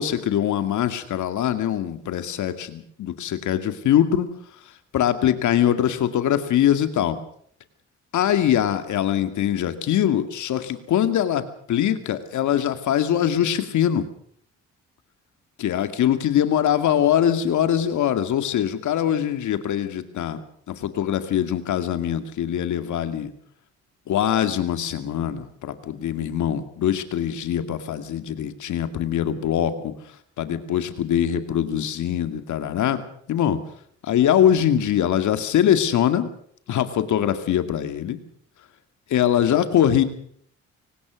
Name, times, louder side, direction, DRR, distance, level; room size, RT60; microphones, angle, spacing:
voice 1, 0.0-4.3 4.9-7.2 8.1-14.1 15.6-20.4 20.7-23.3 24.1-29.9 30.4-33.0 33.3-33.6 34.0-36.3 36.7-38.2 39.1-40.0, left 10 dB, 75° left, 9 dB, 2.3 m, -22 dB
24.0 x 19.0 x 6.4 m, 0.63 s
cardioid pair, 90°, 30 cm